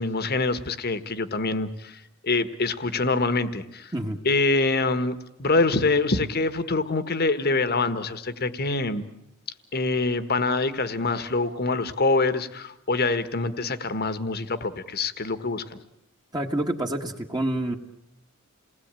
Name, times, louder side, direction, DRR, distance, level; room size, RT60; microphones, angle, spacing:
voice 1, 0.0-3.9 4.2-5.1 5.4-9.0 9.7-15.8, left 3 dB, 50° left, 12 dB, 1.5 m, -25 dB
voice 2, 16.3-17.8, right 1 dB, 20° right, 2 dB, 1.6 m, -27 dB
28.5 x 19.5 x 9.0 m, 0.85 s
head